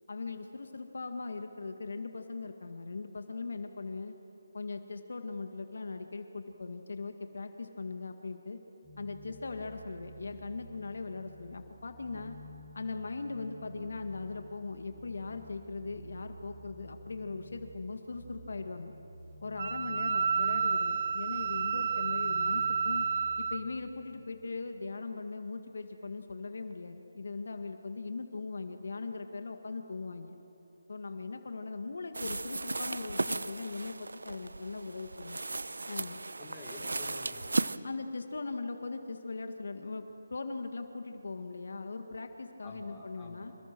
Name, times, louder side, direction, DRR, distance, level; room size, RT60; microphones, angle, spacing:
voice 1, 0.1-4.1 4.5-8.6 9.0-12.4 12.7-18.9 19.4-23.1 23.4-30.4 30.9-35.4 35.9-36.2 37.8-40.0 40.3-43.5, left 3 dB, 65° left, 6 dB, 2.0 m, -40 dB
sound 1, 8.8-24.2, right 1 dB, 15° right, 6.4 m, -52 dB
Wind instrument woodwind instrument, 19.6-23.6, right 6 dB, 40° right, 0.6 m, -30 dB
sound 2, 32.1-37.8, right 3 dB, 85° right, 0.9 m, -36 dB
voice 2, 36.4-37.6 42.6-43.6, left 2 dB, 10° left, -3 dB, 3.6 m, -48 dB
28.5 x 27.5 x 6.2 m, 2.9 s
figure-of-eight pair, 165°, 0 cm